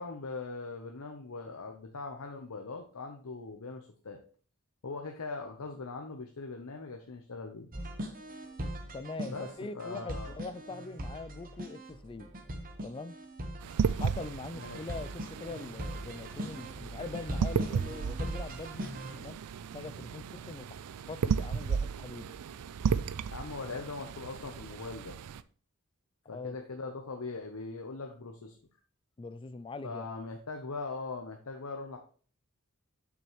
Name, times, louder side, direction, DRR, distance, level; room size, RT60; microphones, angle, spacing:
voice 1, 0.0-4.2 4.8-7.7 9.2-9.5 9.7-10.3 14.6-14.9 23.3-25.2 26.3-28.5 29.8-32.0, left 3 dB, 75° left, 0.8 m, -41 dB
sound 1, 7.7-19.3, equal, 40° right, 1.1 m, -40 dB
voice 2, 8.9-12.3 12.8-13.2 13.9-19.4 19.7-22.3 26.3-26.6 29.2-30.1, left 3 dB, 25° left, 0.3 m, -42 dB
sound 2, 13.6-25.4, right 6 dB, 85° right, 0.4 m, -35 dB
7.3 x 6.1 x 3.0 m
head